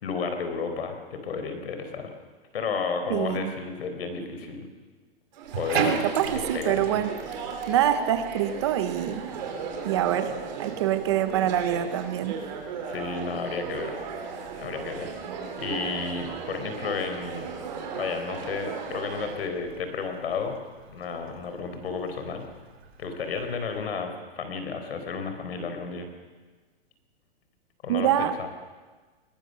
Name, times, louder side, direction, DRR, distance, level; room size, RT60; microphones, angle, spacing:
voice 1, 0.0-2.1 2.5-4.7 5.6-6.0 6.5-7.0 12.9-14.0 14.6-17.5 18.0-20.6 20.9-22.5 23.0-26.1 27.8-28.5, left 5 dB, 75° left, 6 dB, 4.2 m, -32 dB
voice 2, 3.1-3.5 5.8-7.1 7.7-9.2 9.8-10.3 10.6-12.4 27.9-28.3, right 11 dB, 25° right, 11 dB, 0.8 m, -25 dB
Chatter, 5.3-19.5, right 6 dB, 45° right, 3.0 m, -36 dB
Bathtub (filling or washing), 5.4-23.8, right 6 dB, 85° right, 2.9 m, -41 dB
21.0 x 19.0 x 6.6 m, 1.4 s
supercardioid pair, 180°, 31 cm